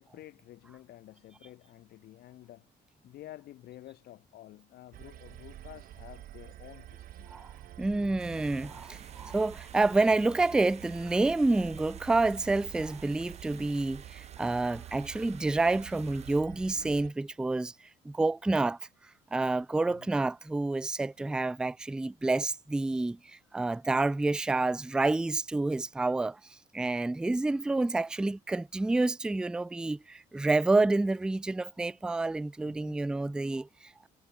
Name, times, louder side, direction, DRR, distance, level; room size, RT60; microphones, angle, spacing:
voice 1, 0.0-2.7 3.0-7.3 19.9-20.1 32.6-33.0, left 14 dB, 70° left, 3.9 m, -51 dB
sound 1, 4.9-17.1, right 13 dB, 60° right, 0.7 m, -48 dB
voice 2, 7.8-17.7 18.0-18.8 19.3-26.4 26.7-34.1, right 2 dB, 5° right, 0.3 m, -28 dB
sound 2, 8.2-16.4, right 7 dB, 40° right, 2.4 m, -53 dB
cardioid pair, 110°, 17 cm